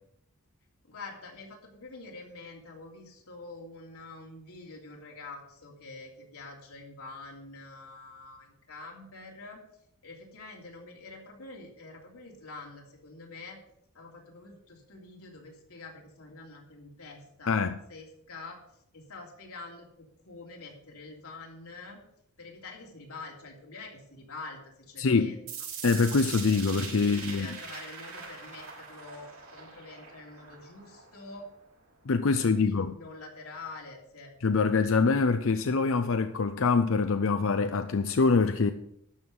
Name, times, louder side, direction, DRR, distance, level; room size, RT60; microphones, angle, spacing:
voice 1, 0.8-9.6 10.0-13.6 13.9-18.6 18.9-19.9 20.2-22.0 22.4-25.5 26.8-31.5 32.3-34.3, left 3 dB, 85° left, 3.2 m, -46 dB
voice 2, 17.5-17.8 25.0-25.3 25.8-27.5 32.1-33.0 34.4-38.7, left 4 dB, 60° left, 0.5 m, -25 dB
sound 1, 25.5-31.5, right 5 dB, 85° right, 5.4 m, -42 dB
12.5 x 5.5 x 7.8 m
head